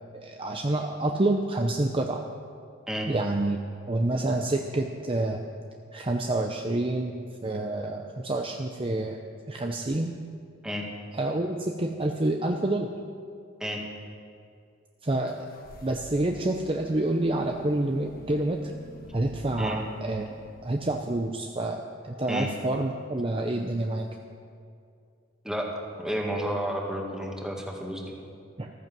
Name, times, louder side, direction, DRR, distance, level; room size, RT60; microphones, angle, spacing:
voice 1, 0.1-2.2 3.1-3.6 3.9-5.5 5.9-9.2 9.5-10.1 11.1-12.9 15.0-15.4 15.8-18.7 19.1-20.3 20.6-24.1 28.6-28.7, right 2 dB, 25° right, 3 dB, 0.6 m, -28 dB
sound 1, 15.3-21.2, left 1 dB, 45° left, 1.4 m, -48 dB
voice 2, 26.0-28.1, equal, 5° right, 0 dB, 1.8 m, -31 dB
14.5 x 14.0 x 6.1 m, 2.4 s
head